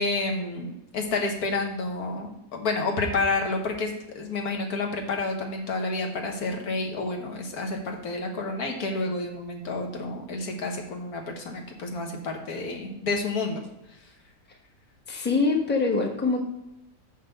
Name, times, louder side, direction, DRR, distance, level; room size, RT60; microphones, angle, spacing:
voice 1, 0.0-13.6, left 3 dB, 70° left, 3 dB, 1.7 m, -29 dB
voice 2, 15.1-16.4, left 4 dB, 10° left, 0 dB, 1.0 m, -24 dB
5.8 x 5.5 x 6.6 m, 0.91 s
omnidirectional pair, 1.7 m